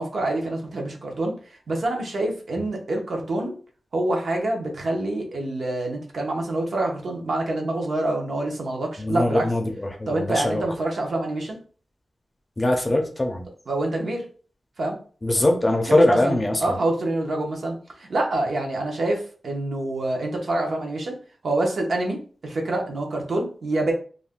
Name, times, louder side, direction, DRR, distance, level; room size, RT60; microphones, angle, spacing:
voice 1, 0.0-1.3 1.7-3.5 3.9-9.5 10.1-11.6 13.7-14.2 14.8-15.0 15.9-21.1 21.4-22.2 22.4-23.9, right 2 dB, 65° right, 1 dB, 0.7 m, -26 dB
voice 2, 9.0-10.6 12.6-13.4 15.2-16.8, left 1 dB, 20° left, 3 dB, 0.4 m, -22 dB
2.4 x 2.1 x 3.5 m, 0.41 s
wide cardioid pair, 165°, 0 cm